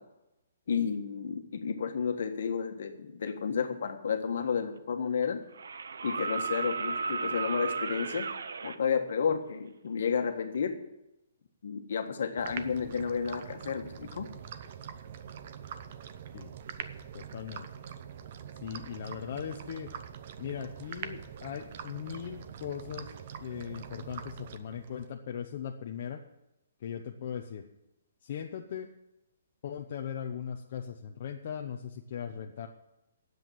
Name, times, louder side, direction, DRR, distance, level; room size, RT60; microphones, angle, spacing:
voice 1, 0.7-5.4 6.0-10.7 11.6-14.3, left 6 dB, 55° left, 6 dB, 1.5 m, -31 dB
sound 1, 4.4-4.5 5.5-8.8 10.5-10.6, right 4 dB, 80° right, 0.8 m, -34 dB
sound 2, 12.4-25.1, right 8 dB, 35° right, 0.7 m, -44 dB
voice 2, 17.1-17.7 18.6-19.9 20.4-23.1 23.4-26.2 26.8-27.6 28.2-28.9 29.6-32.7, left 8 dB, 40° left, 2 dB, 0.8 m, -39 dB
9.8 x 7.9 x 9.2 m, 0.91 s
hypercardioid pair, 175°, 0 cm